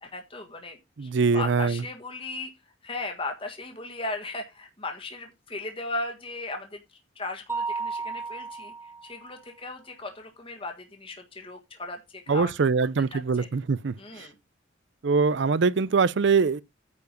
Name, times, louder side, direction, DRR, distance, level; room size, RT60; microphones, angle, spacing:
voice 1, 0.0-2.5 2.8-12.7 13.1-13.5 14.0-14.3, left 2 dB, 30° left, 1.6 m, -37 dB
voice 2, 1.0-1.8 12.3-14.3 15.0-16.6, right 5 dB, 65° right, 0.5 m, -23 dB
Mallet percussion, 7.5-9.3, right 4 dB, 10° right, 1.0 m, -33 dB
9.6 x 4.9 x 5.2 m
head